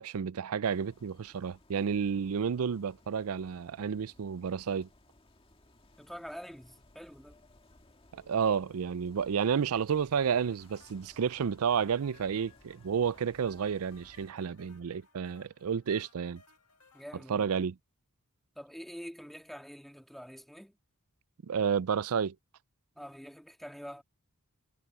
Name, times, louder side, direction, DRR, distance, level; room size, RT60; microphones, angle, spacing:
voice 1, 0.0-4.9 8.1-16.4 17.3-17.8 21.5-22.3, right 7 dB, 75° right, 0.4 m, -31 dB
sound 1, 0.6-14.3, left 1 dB, 25° left, 2.0 m, -61 dB
voice 2, 6.0-7.4 16.9-17.5 18.6-20.7 23.0-24.0, equal, ahead, 1.9 m, -46 dB
sound 2, 10.1-17.0, left 6 dB, 90° left, 2.0 m, -63 dB
head